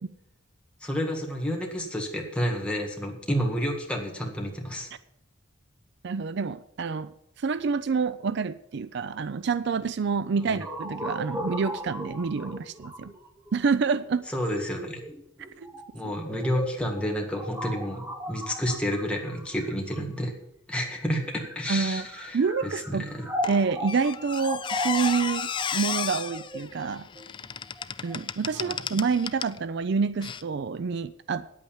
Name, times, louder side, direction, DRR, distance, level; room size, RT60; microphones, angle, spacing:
voice 1, 0.8-4.9 10.5-10.6 14.3-15.0 15.9-20.3 20.7-23.2 28.5-28.8, equal, 5° left, 0 dB, 1.8 m, -30 dB
voice 2, 6.0-7.1 7.4-13.1 13.5-14.2 15.6-15.7 21.7-22.1 22.3-23.1 23.5-27.1 28.0-31.5, right 5 dB, 55° right, 15 dB, 0.4 m, -27 dB
sound 1, 10.6-20.4 21.2-28.1, equal, 10° right, 0.9 m, -37 dB
Squeak, 23.4-29.6 30.2-30.4, left 7 dB, 25° left, 0.3 m, -34 dB
9.4 x 8.5 x 7.2 m, 0.75 s
head